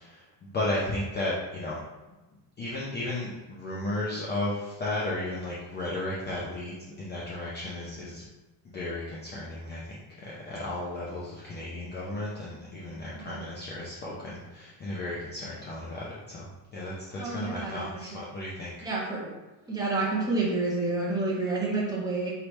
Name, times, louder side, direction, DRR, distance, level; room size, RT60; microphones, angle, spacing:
voice 1, 0.0-1.8 2.6-8.2 8.6-18.7, left 1 dB, 20° left, -6 dB, 0.5 m, -34 dB
voice 2, 17.2-17.9 18.8-19.3 19.7-22.3, right 3 dB, 10° right, -6 dB, 1.0 m, -29 dB
4.7 x 3.2 x 3.1 m, 1.1 s
cardioid pair, 140°, 47 cm